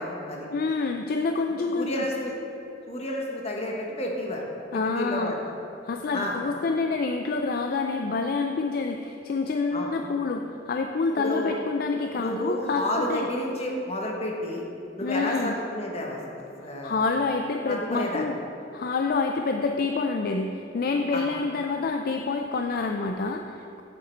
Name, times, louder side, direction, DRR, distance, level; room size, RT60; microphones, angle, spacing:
voice 1, 0.0-0.5 1.8-2.3 2.9-4.4 4.7-5.3 6.1-6.3 9.7-9.9 11.2-11.6 12.2-14.6 15.0-17.0 17.7-18.2 21.1-21.2, left 1 dB, 35° left, -1 dB, 1.1 m, -30 dB
voice 2, 0.5-2.0 4.7-5.3 5.8-13.3 15.0-15.6 16.8-18.4 18.7-23.8, left 4 dB, 50° left, 4 dB, 0.4 m, -27 dB
8.4 x 6.5 x 4.4 m, 2.7 s
head